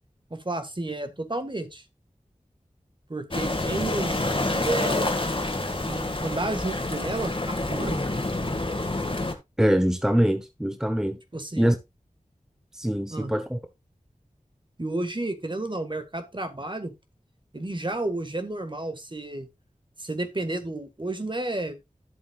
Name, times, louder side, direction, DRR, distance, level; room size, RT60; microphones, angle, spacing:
voice 1, 0.3-1.8 3.1-5.1 5.8-8.0 11.3-11.7 13.1-13.3 14.8-16.9 17.5-19.5 20.0-21.8, right 2 dB, 35° right, 1.7 m, -31 dB
sound 1, 3.3-9.3, left 2 dB, 40° left, 1.8 m, -28 dB
voice 2, 9.6-11.2 11.6-11.8 12.7-13.6, equal, 5° right, 1.0 m, -23 dB
11.5 x 7.4 x 2.4 m
wide cardioid pair, 40°, 14 cm